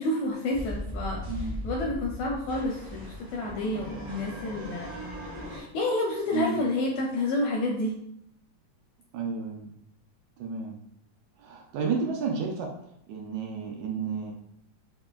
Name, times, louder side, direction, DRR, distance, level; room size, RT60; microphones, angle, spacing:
voice 1, 0.0-4.9 5.4-8.0, left 2 dB, 80° left, -1 dB, 1.6 m, -29 dB
sound 1, 0.5-5.6, left 1 dB, 45° right, 0.5 m, -38 dB
voice 2, 1.3-1.6 6.3-6.6 9.1-9.7 10.4-10.8 11.4-12.7 13.1-14.3, right 5 dB, 80° right, 0 dB, 1.8 m, -31 dB
4.9 x 2.8 x 2.3 m, 0.73 s
omnidirectional pair, 3.6 m